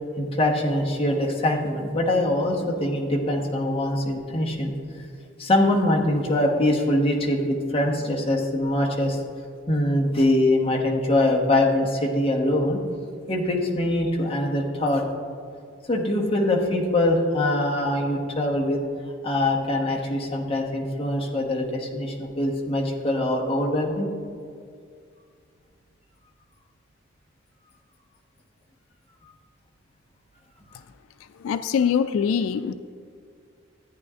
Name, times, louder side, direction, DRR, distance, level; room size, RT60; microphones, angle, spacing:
voice 1, 0.2-4.7 5.4-9.2 9.7-12.8 13.3-15.0 15.9-18.8 19.2-24.1, left 1 dB, 30° left, -1 dB, 1.1 m, -23 dB
voice 2, 31.4-32.7, left 7 dB, 90° left, 11 dB, 0.3 m, -23 dB
13.5 x 9.2 x 2.5 m, 2.2 s
head